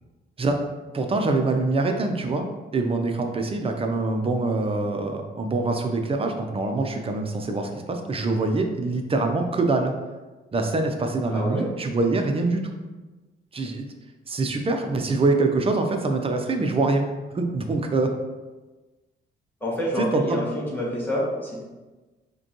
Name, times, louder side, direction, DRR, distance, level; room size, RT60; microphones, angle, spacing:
voice 1, 0.9-2.5 2.7-9.9 10.5-12.8 13.5-13.9 14.3-17.1 17.3-18.1 20.0-20.4, right 3 dB, 30° right, 4 dB, 0.5 m, -24 dB
voice 2, 11.3-11.6 19.6-21.6, equal, 10° left, -5 dB, 1.1 m, -28 dB
5.0 x 2.3 x 3.0 m, 1.2 s
cardioid pair, 90°, 20 cm